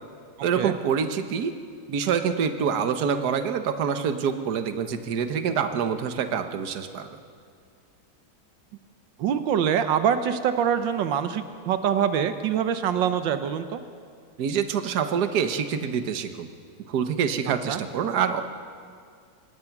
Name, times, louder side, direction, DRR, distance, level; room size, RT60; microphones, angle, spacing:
voice 1, 0.4-1.5 1.9-7.1 14.4-16.5 16.9-18.4, right 7 dB, 60° right, 8 dB, 1.6 m, -26 dB
voice 2, 9.2-13.8 17.7-17.8, right 8 dB, 85° right, 9 dB, 1.6 m, -24 dB
25.0 x 20.0 x 6.0 m, 2.2 s
omnidirectional pair, 2.0 m